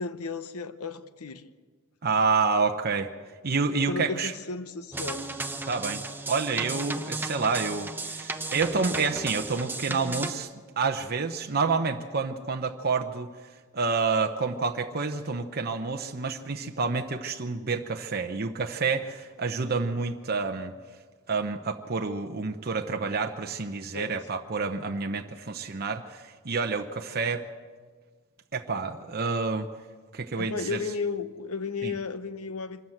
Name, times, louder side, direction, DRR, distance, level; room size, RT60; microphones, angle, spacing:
voice 1, 0.0-1.4 3.9-5.3 23.9-24.2 30.4-32.8, left 4 dB, 85° left, 1.0 m, -34 dB
voice 2, 2.0-3.1 3.4-4.3 5.7-6.0 6.3-10.5 10.8-20.7 21.3-27.4 28.5-29.7 30.1-30.8 31.8-31.9, right 4 dB, 45° right, 0.8 m, -28 dB
sound 1, 4.9-10.3, right 2 dB, 10° right, 0.9 m, -34 dB
25.0 x 13.0 x 7.9 m
head